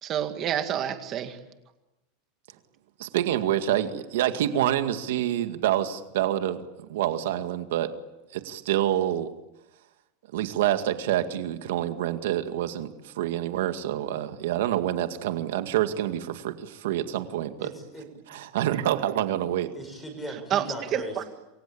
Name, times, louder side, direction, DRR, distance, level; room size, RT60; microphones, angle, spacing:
voice 1, 0.0-1.4 20.5-20.6 20.9-21.2, right 10 dB, 25° right, 7 dB, 2.2 m, -28 dB
voice 2, 3.0-6.6 6.9-7.9 8.3-9.3 10.3-17.7 18.3-19.7, right 12 dB, 75° right, 8 dB, 2.0 m, -27 dB
voice 3, 17.6-18.1 19.7-21.3, right 1 dB, 5° left, 5 dB, 5.9 m, -38 dB
28.0 x 23.5 x 8.6 m, 0.99 s
supercardioid pair, 180°, 0 cm